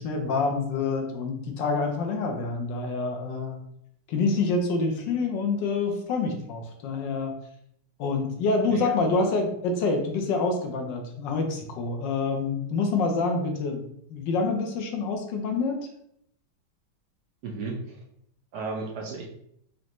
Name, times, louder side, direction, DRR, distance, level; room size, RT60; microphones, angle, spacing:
voice 1, 0.0-3.6 4.1-7.3 8.0-15.8, left 3 dB, 70° left, 3 dB, 1.2 m, -27 dB
voice 2, 8.6-8.9 17.4-18.0 18.5-19.3, right 3 dB, 65° right, -1 dB, 1.1 m, -34 dB
5.1 x 2.6 x 2.9 m, 0.72 s
omnidirectional pair, 2.1 m